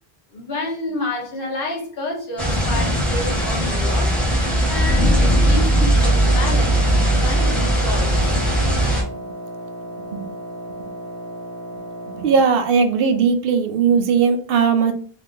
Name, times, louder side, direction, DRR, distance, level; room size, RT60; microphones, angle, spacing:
voice 1, 0.3-4.2 4.7-8.4, left 2 dB, 60° left, -2 dB, 1.2 m, -29 dB
sound 1, 2.4-9.0, right 1 dB, ahead, 1.0 m, -18 dB
Wind instrument woodwind instrument, 5.9-12.5, right 1 dB, 20° left, 0.5 m, -34 dB
voice 2, 6.9-7.2 7.6-7.7 8.8-9.2 10.0-10.3 12.1-14.9, right 6 dB, 65° right, 7 dB, 0.8 m, -19 dB
3.0 x 2.4 x 3.7 m, 0.43 s
omnidirectional pair, 1.1 m